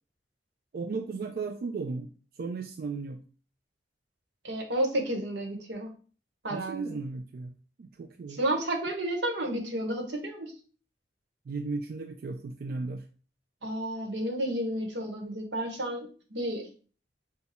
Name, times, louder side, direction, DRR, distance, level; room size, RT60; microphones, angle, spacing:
voice 1, 0.7-2.1 2.4-3.2 6.5-7.5 7.8-8.4 11.5-13.0, right 4 dB, 55° right, 6 dB, 0.3 m, -35 dB
voice 2, 4.4-5.9 6.4-6.9 8.3-10.5 13.6-16.7, right 1 dB, 85° right, 2 dB, 1.2 m, -31 dB
5.8 x 2.3 x 4.0 m, 0.40 s
head